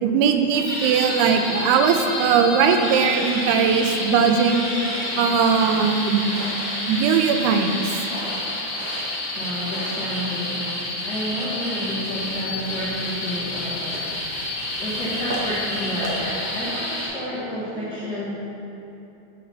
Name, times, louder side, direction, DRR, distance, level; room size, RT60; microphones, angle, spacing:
voice 1, 0.0-4.7 5.2-6.3 6.8-8.0, right 6 dB, 90° right, 5 dB, 1.7 m, -20 dB
sound 1, 0.5-17.1, left 1 dB, 45° left, 1.7 m, -29 dB
sound 2, 3.9-4.0 4.6-5.4 6.1-6.8 7.9-9.0 9.4-10.0, right 1 dB, 40° right, 1.6 m, -39 dB
voice 2, 9.3-14.2 14.8-18.3, equal, 75° left, -12 dB, 0.9 m, -30 dB
sound 3, 12.0-16.6, right 1 dB, 65° right, 1.6 m, -37 dB
5.8 x 4.1 x 6.0 m, 2.8 s
omnidirectional pair, 4.0 m